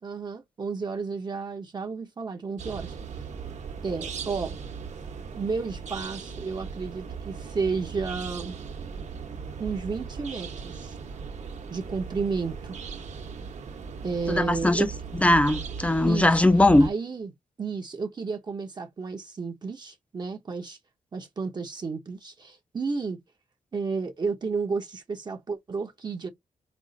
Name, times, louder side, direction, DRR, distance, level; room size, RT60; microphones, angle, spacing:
voice 1, 0.0-3.0 3.8-4.6 5.3-8.6 9.6-11.0 11.7-12.7 14.0-14.9 16.0-16.5 16.8-17.3 17.6-20.8 21.1-23.2 23.7-26.3, right 4 dB, 30° right, 0.7 m, -32 dB
sound 1, 2.6-16.9, right 6 dB, 60° right, 1.0 m, -38 dB
voice 2, 14.3-14.9 15.2-16.9, left 1 dB, 10° left, 0.4 m, -20 dB
5.1 x 2.4 x 3.8 m
wide cardioid pair, 170°, 14 cm